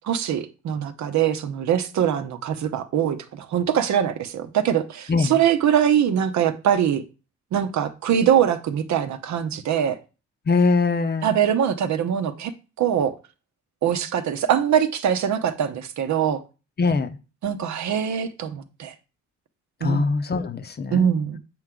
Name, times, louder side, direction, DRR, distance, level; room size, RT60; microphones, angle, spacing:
voice 1, 0.0-7.0 7.5-10.0 11.2-12.5 12.8-13.1 13.8-16.4 17.4-18.9 19.8-20.1 20.9-21.4, right 9 dB, 70° right, 8 dB, 0.9 m, -23 dB
voice 2, 5.1-5.4 10.5-11.3 16.8-17.2 19.8-21.1, left 4 dB, 35° left, 9 dB, 0.7 m, -22 dB
7.9 x 4.5 x 3.7 m, 0.33 s
cardioid pair, 90°, 30 cm